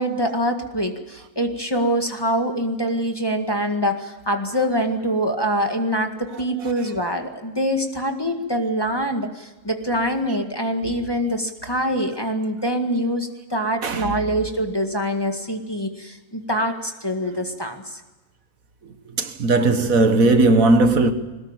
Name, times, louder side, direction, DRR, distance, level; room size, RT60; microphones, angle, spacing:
voice 1, 0.0-18.0, equal, 15° left, 1.9 m, -24 dB
voice 2, 13.8-14.1 19.2-21.1, right 2 dB, 65° right, 1.8 m, -17 dB
22.0 x 19.0 x 9.0 m
omnidirectional pair, 1.6 m